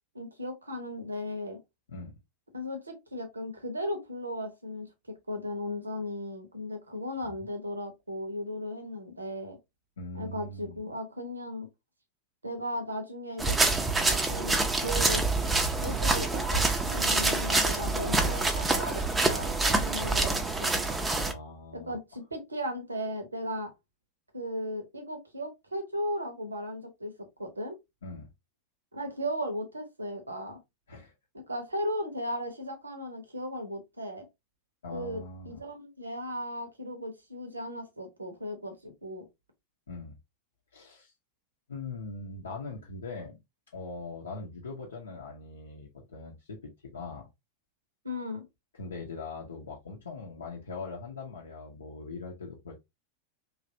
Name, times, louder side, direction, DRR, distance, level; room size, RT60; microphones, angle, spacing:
voice 1, 0.1-1.6 2.5-9.6 10.1-11.7 12.4-13.6 14.0-14.5 14.8-15.3 15.8-20.8 21.7-23.7 24.3-27.8 28.9-30.6 31.3-34.3 34.9-39.3 48.0-48.5, equal, 80° right, 0.8 m, -36 dB
voice 2, 10.0-10.8 21.2-22.0 28.0-28.3 30.9-31.1 34.8-35.6 39.9-40.1 40.7-41.1 41.7-43.4 43.7-47.3 48.8-52.8, left 3 dB, 70° left, 0.6 m, -41 dB
sound 1, 13.4-21.3, right 3 dB, 10° right, 0.5 m, -26 dB
3.1 x 2.5 x 2.6 m
figure-of-eight pair, 90°, 0 cm